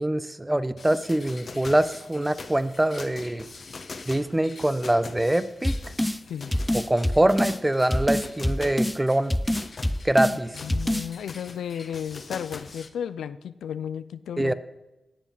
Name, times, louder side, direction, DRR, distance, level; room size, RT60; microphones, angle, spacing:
voice 1, 0.0-3.5 4.1-5.7 6.9-9.4 10.0-10.6 14.4-14.5, right 1 dB, 15° right, 13 dB, 1.0 m, -24 dB
sound 1, 0.8-12.9, left 4 dB, 55° left, 1.2 m, -43 dB
sound 2, 5.6-6.2 6.5-7.6 7.9-9.0 9.3-10.4 10.7-11.1, left 1 dB, 5° left, 0.8 m, -25 dB
voice 2, 10.6-14.5, left 8 dB, 85° left, 14 dB, 0.4 m, -34 dB
19.5 x 7.3 x 5.7 m, 1.0 s
supercardioid pair, 40°, 0 cm